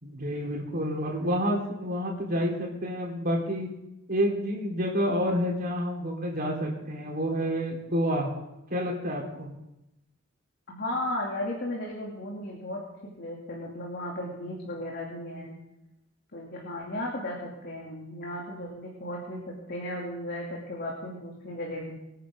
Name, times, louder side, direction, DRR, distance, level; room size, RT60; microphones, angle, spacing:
voice 1, 0.0-3.7 4.1-8.3 8.7-9.5, equal, 45° right, -2 dB, 4.0 m, -29 dB
voice 2, 10.7-15.5 16.3-22.0, left 1 dB, 55° left, -3 dB, 2.8 m, -35 dB
24.5 x 10.0 x 3.8 m, 0.88 s
head